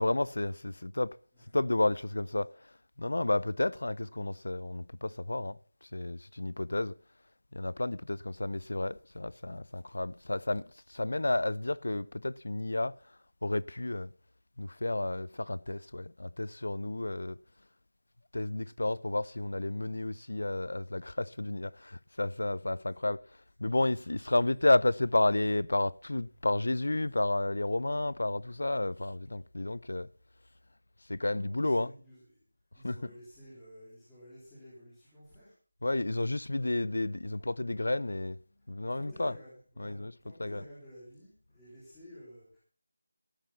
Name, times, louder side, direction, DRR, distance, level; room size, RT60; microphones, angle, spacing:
voice 1, 0.0-1.2 1.5-2.7 3.0-5.6 5.9-6.9 7.5-13.0 13.4-14.1 14.6-17.4 18.3-23.2 23.6-30.1 31.1-32.0 32.8-33.1 35.8-38.4 38.7-39.3 39.8-40.6, left 2 dB, 80° left, 0.6 m, -31 dB
voice 2, 31.2-32.4 32.7-35.5 38.6-42.6, equal, 5° left, 3.4 m, -53 dB
13.0 x 10.0 x 5.7 m
figure-of-eight pair, 180°, 0 cm